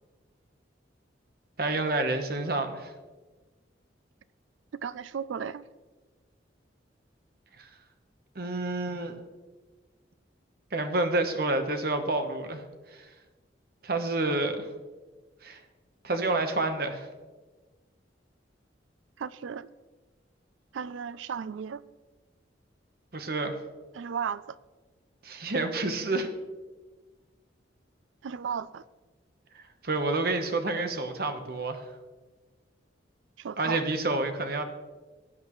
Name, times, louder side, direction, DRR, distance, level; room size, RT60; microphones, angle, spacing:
voice 1, 1.6-2.9 7.6-7.7 8.3-9.2 10.7-12.6 12.9-13.1 13.8-14.7 15.4-15.6 16.0-17.1 23.1-23.5 25.2-26.3 29.5-31.8 33.6-34.6, right 2 dB, 55° right, 7 dB, 1.0 m, -29 dB
voice 2, 4.8-5.6 19.2-19.7 20.7-21.8 23.9-24.6 28.2-28.8 33.4-33.9, right 7 dB, 90° right, 17 dB, 0.4 m, -35 dB
18.0 x 8.5 x 3.1 m, 1.3 s
head